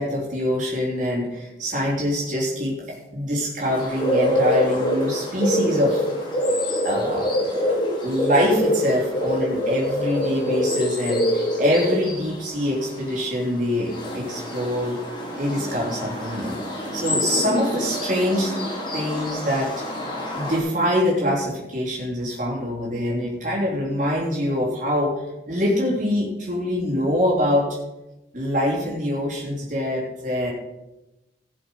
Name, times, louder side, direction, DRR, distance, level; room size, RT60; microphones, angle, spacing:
voice 1, 0.0-6.0 6.8-15.0 15.4-18.6 18.9-19.8 20.3-25.2 25.5-27.8 28.3-30.5, equal, 45° right, -4 dB, 3.4 m, -24 dB
sound 1, 3.6-20.6, left 1 dB, 25° left, 3.0 m, -26 dB
16.0 x 6.8 x 5.4 m, 0.97 s
head